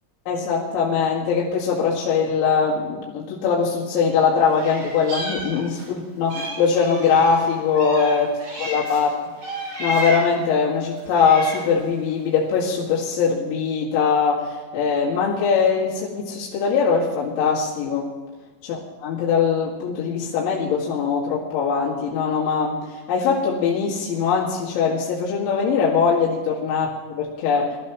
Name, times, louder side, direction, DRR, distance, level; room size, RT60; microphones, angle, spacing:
voice 1, 0.3-9.2 9.4-9.5 9.8-18.1 18.7-27.8, left 5 dB, 80° left, -5 dB, 4.3 m, -21 dB
Meow, 4.5-5.9 6.3-9.0 9.4-10.4 11.0-11.8, right 1 dB, 55° right, 7.6 m, -32 dB
22.0 x 13.5 x 3.1 m, 1.3 s
omnidirectional pair, 5.3 m